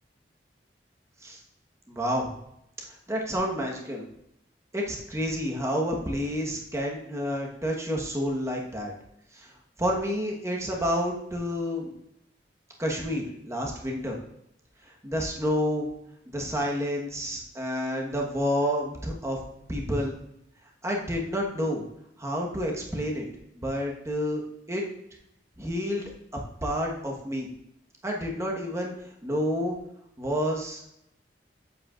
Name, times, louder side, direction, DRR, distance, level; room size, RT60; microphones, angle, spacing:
voice 1, 1.9-2.3 3.1-4.1 4.7-8.9 9.3-9.5 9.8-11.9 12.8-14.2 15.0-15.9 16.3-19.4 19.7-20.1 20.8-21.8 22.2-23.3 23.5-24.4 24.7-24.8 25.6-26.1 26.6-27.5 28.0-28.9 29.2-29.8 30.2-30.8, equal, 15° right, -1 dB, 1.2 m, -29 dB
8.0 x 7.7 x 2.5 m, 0.79 s
head